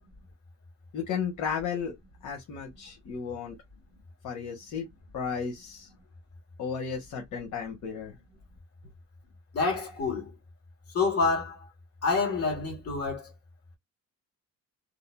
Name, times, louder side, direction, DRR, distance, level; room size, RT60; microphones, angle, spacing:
voice 1, 0.9-2.0 2.2-3.6 4.2-4.9 5.1-5.9 6.6-8.1, left 6 dB, 80° left, 1.3 m, -34 dB
voice 2, 9.5-10.3 10.9-11.6 12.0-13.3, left 4 dB, 50° left, 2.1 m, -27 dB
3.6 x 2.0 x 2.3 m
cardioid pair, 90°, 30 cm